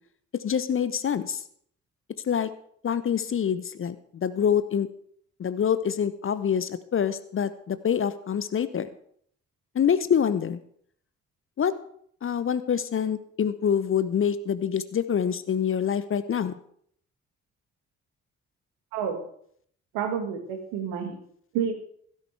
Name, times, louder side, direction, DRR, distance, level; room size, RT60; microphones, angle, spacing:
voice 1, 0.3-1.4 2.2-2.5 2.8-4.9 5.4-8.9 9.7-10.6 11.6-11.7 12.2-16.6, left 8 dB, 30° left, 14 dB, 0.8 m, -26 dB
voice 2, 19.9-21.2 21.5-21.7, right 7 dB, 65° right, 5 dB, 2.0 m, -29 dB
16.0 x 13.0 x 3.4 m, 0.64 s
figure-of-eight pair, 40°, 40 cm